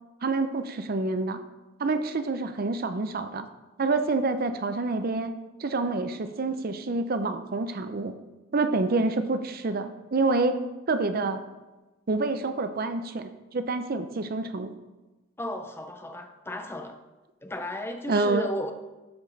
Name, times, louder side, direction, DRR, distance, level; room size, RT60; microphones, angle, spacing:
voice 1, 0.2-1.4 1.8-3.5 3.8-5.3 5.6-8.1 8.5-10.6 10.9-11.4 12.1-14.7 18.1-18.5, right 3 dB, 50° right, 9 dB, 0.6 m, -27 dB
voice 2, 15.4-17.0 17.4-18.7, left 1 dB, 10° left, 6 dB, 0.6 m, -34 dB
12.0 x 5.1 x 4.0 m, 1.1 s
head